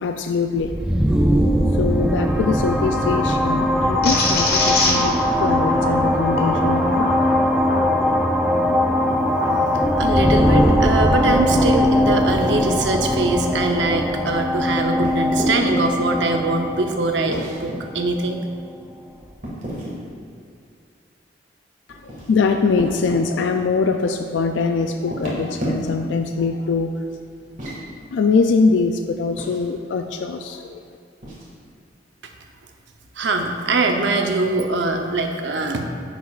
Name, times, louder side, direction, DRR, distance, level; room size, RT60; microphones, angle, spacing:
voice 1, 0.0-0.7 1.7-7.1 21.9-27.1 28.1-30.8, left 4 dB, 85° left, 6 dB, 0.3 m, -22 dB
sound 1, 0.6-18.2, equal, 5° right, 0.4 m, -20 dB
sound 2, 4.0-9.6 10.1-11.3, left 2 dB, 60° left, 1.2 m, -26 dB
voice 2, 9.7-18.4 33.2-35.9, right 2 dB, 80° right, 4 dB, 0.7 m, -22 dB
sound 3, 15.0-15.8 17.3-17.7 19.4-20.0 21.9-23.2 25.0-26.1 27.4-27.8 29.4-29.6 31.2-31.5, right 1 dB, 45° right, 1.9 m, -30 dB
9.6 x 6.7 x 2.4 m, 2.3 s
head